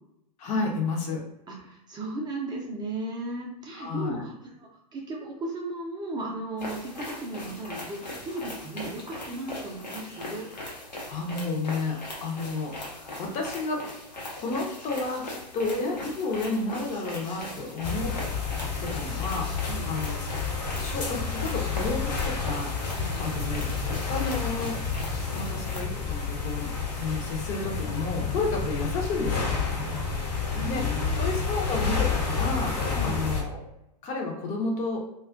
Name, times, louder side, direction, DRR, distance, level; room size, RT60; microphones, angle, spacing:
voice 1, 0.4-1.2 3.7-4.3 11.1-13.9 14.4-18.1 18.8-20.5 20.8-22.7 23.2-24.8 25.3-26.7 27.0-29.5 30.6-32.7 33.0-33.7 34.0-35.0, left 3 dB, 35° left, 0 dB, 0.6 m, -31 dB
voice 2, 1.5-10.5 19.7-19.9 22.9-23.3 30.0-30.1 30.4-31.3 32.9-33.3, right 2 dB, 20° right, -2 dB, 0.5 m, -36 dB
sound 1, 6.6-25.8, left 1 dB, 90° left, 0.7 m, -40 dB
sound 2, 17.8-33.4, left 5 dB, 60° left, 0.9 m, -30 dB
2.4 x 2.2 x 2.4 m, 0.83 s
hypercardioid pair, 100°, 21 cm